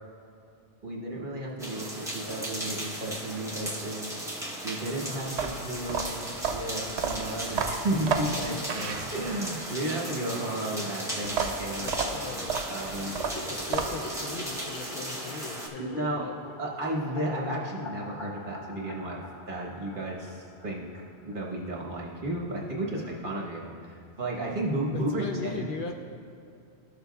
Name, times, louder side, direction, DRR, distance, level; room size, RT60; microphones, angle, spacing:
voice 1, 0.8-4.1 4.6-12.2 12.7-13.3 15.8-16.2 16.6-19.2 19.5-20.9 21.2-25.7, right 1 dB, 50° right, -3 dB, 1.3 m, -33 dB
sound 1, 1.6-15.7, right 1 dB, 5° right, 0.8 m, -36 dB
sound 2, 5.3-9.6 11.2-14.2, right 6 dB, 80° right, 0.9 m, -31 dB
voice 2, 11.8-12.7 13.5-16.3 24.9-25.9, left 4 dB, 60° left, 2 dB, 0.6 m, -38 dB
sound 3, 13.2-21.4 21.7-21.8 22.0-22.1 22.4-22.5 22.7-23.2, left 2 dB, 80° left, 1.2 m, -44 dB
13.5 x 6.6 x 2.3 m, 2.5 s
omnidirectional pair, 1.1 m